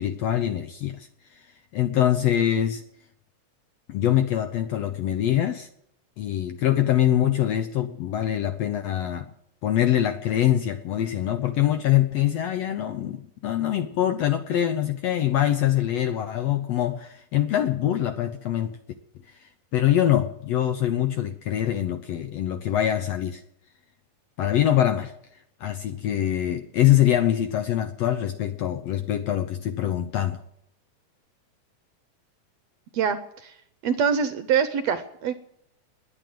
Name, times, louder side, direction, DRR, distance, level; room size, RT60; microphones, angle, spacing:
voice 1, 0.0-1.5 1.7-2.8 3.9-5.7 6.2-9.3 9.6-18.8 19.4-23.4 24.4-25.1 25.6-30.4, left 11 dB, 70° left, 8 dB, 1.6 m, -24 dB
voice 2, 32.9-33.5 33.8-35.3, right 7 dB, 70° right, 10 dB, 1.7 m, -24 dB
21.0 x 9.0 x 7.7 m, 0.76 s
omnidirectional pair, 3.8 m